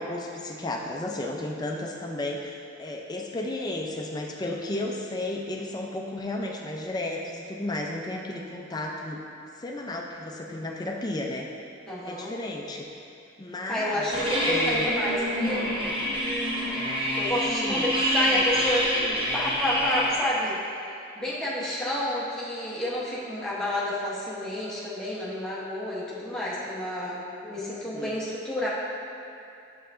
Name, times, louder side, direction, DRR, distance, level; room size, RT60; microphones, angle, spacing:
voice 1, 0.0-9.2 9.6-11.5 12.0-12.9 13.4-14.1 14.5-14.9 17.5-18.0 21.6-21.7 27.4-28.2, left 2 dB, 20° left, 0 dB, 0.4 m, -33 dB
voice 2, 11.9-12.3 13.7-15.6 17.1-20.6 21.2-28.7, left 1 dB, 5° left, -8 dB, 0.9 m, -30 dB
sound 1, 14.1-20.1, equal, 25° right, 0.9 m, -26 dB
6.6 x 5.6 x 2.5 m, 2.7 s
head